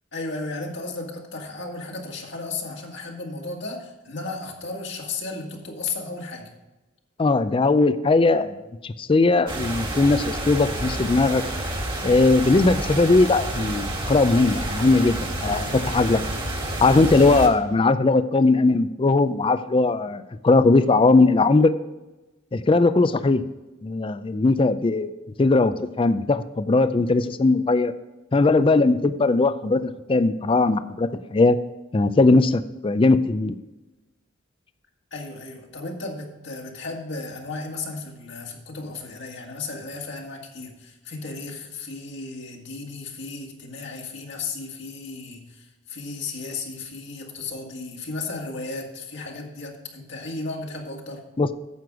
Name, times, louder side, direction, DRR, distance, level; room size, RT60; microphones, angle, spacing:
voice 1, 0.1-6.5 35.1-51.2, left 3 dB, 60° left, 0 dB, 1.8 m, -34 dB
voice 2, 7.2-8.6 8.8-11.4 12.0-16.2 16.8-21.7 22.5-23.4 23.8-25.1 25.4-27.9 28.3-31.6 31.9-33.6 51.4-51.5, left 3 dB, 25° left, 12 dB, 0.4 m, -19 dB
sound 1, 9.5-17.5, right 1 dB, 25° right, 1.5 m, -29 dB
9.6 x 7.8 x 4.7 m, 1.1 s
head